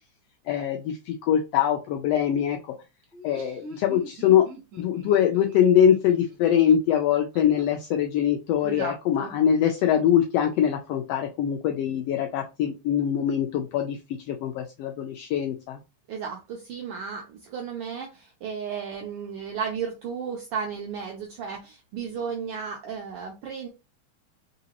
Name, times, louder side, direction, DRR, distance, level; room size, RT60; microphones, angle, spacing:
voice 1, 0.5-2.7 3.2-4.5 4.8-14.0 14.3-15.8, left 9 dB, 80° left, 4 dB, 1.4 m, -23 dB
Laughter, 3.0-7.6, equal, 50° right, 1.4 m, -44 dB
voice 2, 8.6-9.3 16.1-23.7, right 6 dB, 75° right, 1 dB, 1.3 m, -34 dB
3.9 x 3.7 x 2.9 m, 0.28 s
omnidirectional pair, 3.3 m